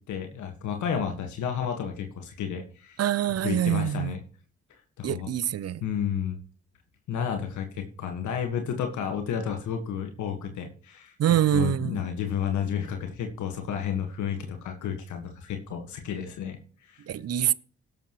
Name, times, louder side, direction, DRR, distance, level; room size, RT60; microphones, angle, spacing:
voice 1, 0.1-3.0 3.4-4.2 5.0-5.3 5.8-6.4 7.1-17.0, left 8 dB, 70° left, 1.7 m, -31 dB
voice 2, 3.0-4.1 5.0-5.8 11.2-12.0 17.1-17.5, right 11 dB, 55° right, 0.7 m, -25 dB
18.0 x 7.2 x 3.1 m
hypercardioid pair, 45°, 30 cm